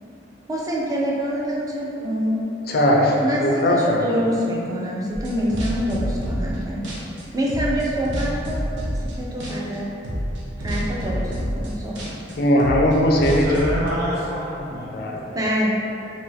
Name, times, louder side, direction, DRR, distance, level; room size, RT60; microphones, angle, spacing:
voice 1, 0.5-2.4 3.2-3.4 3.7-6.8 7.3-8.7 9.2-9.9 10.6-12.1 15.3-15.7, equal, 20° right, -4 dB, 0.4 m, -25 dB
voice 2, 2.7-4.1 12.4-13.4 14.9-15.3, left 1 dB, 55° left, -1 dB, 0.4 m, -19 dB
sound 1, 5.1-6.6 6.8-9.2 9.4-9.8 10.0-13.9, equal, 80° right, 0.5 m, -28 dB
voice 3, 13.3-15.4, equal, 55° right, -10 dB, 1.1 m, -27 dB
2.6 x 2.3 x 3.2 m, 2.8 s
head